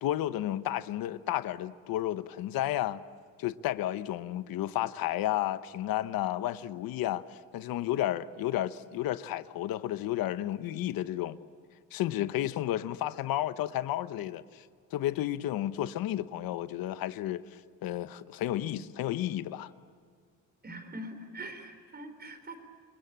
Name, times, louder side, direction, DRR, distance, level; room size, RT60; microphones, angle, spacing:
voice 1, 0.0-3.0 3.4-11.4 11.9-14.6 14.9-19.7, left 13 dB, 90° left, 1.0 m, -32 dB
voice 2, 20.6-22.5, right 1 dB, 30° right, 4.2 m, -43 dB
29.0 x 21.0 x 8.7 m
cardioid pair, 125°, 34 cm